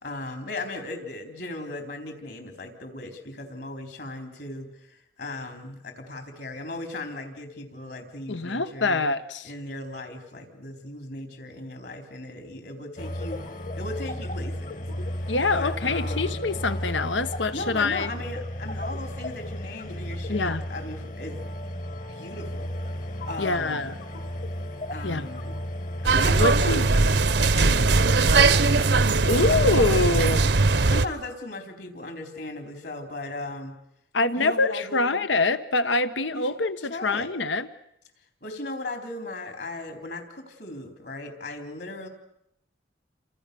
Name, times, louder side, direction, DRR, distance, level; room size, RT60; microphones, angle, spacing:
voice 1, 0.0-9.0 9.4-13.4 13.8-14.9 15.2-16.3 17.5-21.4 22.1-22.8 23.3-23.9 24.9-25.6 26.0-33.8 34.4-35.3 36.3-36.5 36.9-37.3 38.4-42.1, left 2 dB, 65° left, 6 dB, 4.0 m, -37 dB
voice 2, 8.3-9.5 15.3-18.1 20.3-20.6 23.4-24.0 25.0-25.2 26.4-26.8 29.3-30.4 34.1-37.7, left 3 dB, 90° left, 12 dB, 1.2 m, -25 dB
sound 1, 13.0-26.5, equal, 45° left, 1.6 m, -34 dB
sound 2, 26.0-31.1, right 3 dB, 70° right, 1.0 m, -20 dB
29.0 x 26.5 x 7.0 m, 0.80 s
head